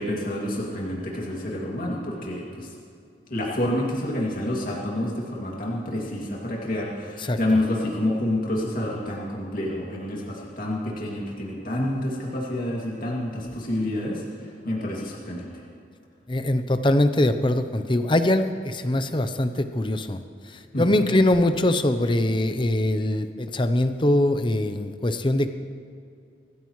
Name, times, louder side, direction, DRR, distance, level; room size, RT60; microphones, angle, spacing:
voice 1, 0.0-2.7 3.3-15.5 20.7-21.1, left 1 dB, 50° left, -4 dB, 2.5 m, -28 dB
voice 2, 16.3-20.2 20.8-25.5, left 1 dB, 25° left, 9 dB, 0.7 m, -22 dB
23.5 x 15.0 x 3.2 m, 2.4 s
head